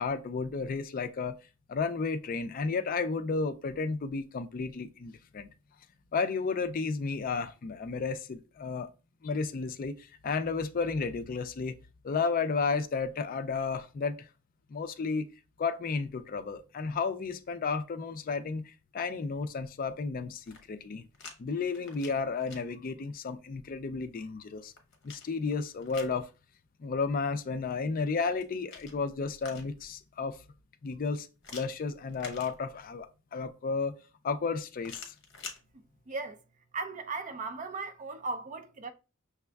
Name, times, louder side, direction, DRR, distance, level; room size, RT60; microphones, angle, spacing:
voice 1, 0.0-1.4 1.7-5.5 6.1-8.9 9.2-11.8 12.0-14.3 14.7-15.3 15.6-21.1 21.4-24.7 25.0-26.3 26.8-30.4 30.8-34.0 34.2-35.1, left 4 dB, 45° left, 0.4 m, -32 dB
sound 1, 20.4-21.4 21.7-22.6 24.3-26.2 28.2-29.9 31.4-33.0 34.8-35.6, left 5 dB, 60° left, 0.9 m, -48 dB
voice 2, 36.1-36.4 36.7-38.9, right 3 dB, 35° right, 0.5 m, -37 dB
6.0 x 3.4 x 2.3 m
head